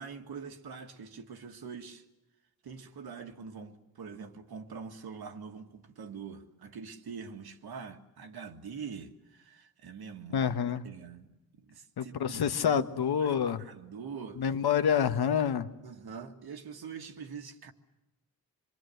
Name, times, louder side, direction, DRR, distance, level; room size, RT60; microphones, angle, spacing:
voice 1, 0.0-2.1 2.6-10.5 10.8-12.8 13.2-14.4 15.8-17.7, right 6 dB, 75° right, 1.9 m, -44 dB
voice 2, 10.3-10.8 12.0-13.6 14.4-15.7, left 8 dB, 80° left, 1.3 m, -27 dB
27.5 x 22.0 x 7.9 m
wide cardioid pair, 175°, 38 cm